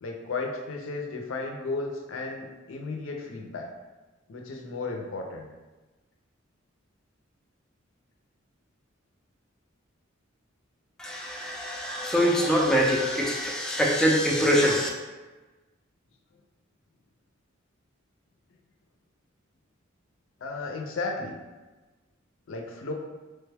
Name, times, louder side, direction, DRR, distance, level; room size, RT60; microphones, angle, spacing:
voice 1, 0.0-3.7 4.3-5.5 20.4-21.4 22.5-22.9, left 3 dB, 70° left, 2 dB, 0.5 m, -34 dB
voice 2, 11.0-14.9, equal, 5° left, -3 dB, 0.4 m, -24 dB
3.2 x 2.2 x 3.3 m, 1.2 s
head